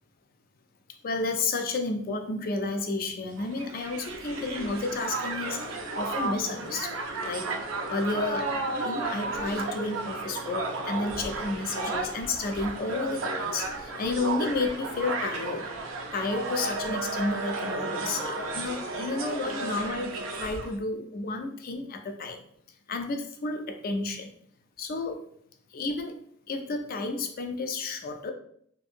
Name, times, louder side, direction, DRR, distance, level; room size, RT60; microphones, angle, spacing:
voice 1, 1.0-7.5 7.9-8.5 8.8-15.6 16.1-22.4 22.9-24.3 24.8-25.2 25.7-26.2 26.5-28.3, left 3 dB, 45° left, 5 dB, 0.4 m, -31 dB
Crowd, 3.4-20.7, right 2 dB, 70° right, 0.4 m, -33 dB
2.7 x 2.6 x 2.5 m, 0.64 s
head